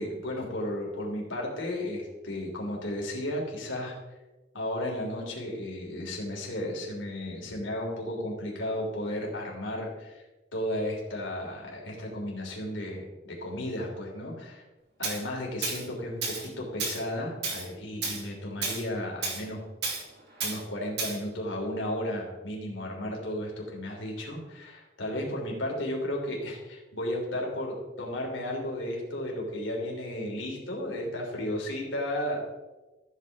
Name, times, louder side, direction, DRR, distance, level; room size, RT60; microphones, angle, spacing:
voice 1, 0.0-4.0 4.5-10.2 10.5-14.6 15.0-19.7 20.4-32.4, left 1 dB, 75° left, -1 dB, 3.4 m, -34 dB
Tools, 15.0-15.2 15.6-15.8 16.2-16.5 16.8-17.0 17.4-17.7 18.0-18.2 18.6-18.8 19.2-19.4 19.8-20.0 20.4-20.6 21.0-21.2, right 4 dB, 60° right, 2.5 m, -31 dB
14.0 x 8.3 x 3.6 m, 1.1 s
head